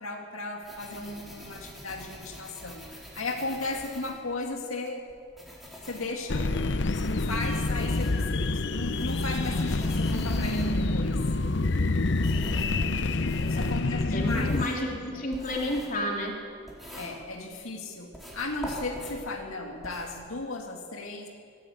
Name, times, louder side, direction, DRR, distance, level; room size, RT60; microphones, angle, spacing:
voice 1, 0.0-2.9 3.2-5.1 5.9-6.5 7.0-11.2 13.4-14.6 14.9-15.2 16.9-21.3, left 2 dB, 90° left, 1 dB, 2.2 m, -35 dB
sound 1, 0.6-4.6 5.1-12.8 13.2-17.7 18.1-20.1, equal, ahead, 4.3 m, -45 dB
sound 2, 6.3-14.7, left 2 dB, 55° left, 0.8 m, -27 dB
voice 2, 12.3-13.0 13.3-13.8 14.1-16.3, left 1 dB, 40° left, -1 dB, 3.5 m, -32 dB
20.5 x 15.5 x 8.5 m, 2.2 s
head